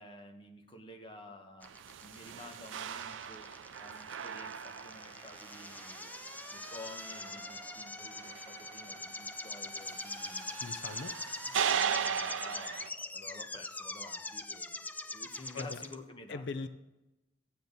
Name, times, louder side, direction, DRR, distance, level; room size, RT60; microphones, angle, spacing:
voice 1, 0.0-1.7 2.0-3.5 3.8-6.1 6.5-10.6 11.4-16.7, left 2 dB, 25° left, 3 dB, 1.2 m, -51 dB
sound 1, 1.6-15.9, left 2 dB, 10° left, 0.4 m, -43 dB
sound 2, 1.6-12.9, right 8 dB, 90° right, 0.4 m, -39 dB
voice 2, 10.6-11.2 15.5-15.8 16.3-16.7, left 4 dB, 65° left, 11 dB, 0.5 m, -40 dB
14.5 x 8.8 x 4.0 m, 0.99 s
head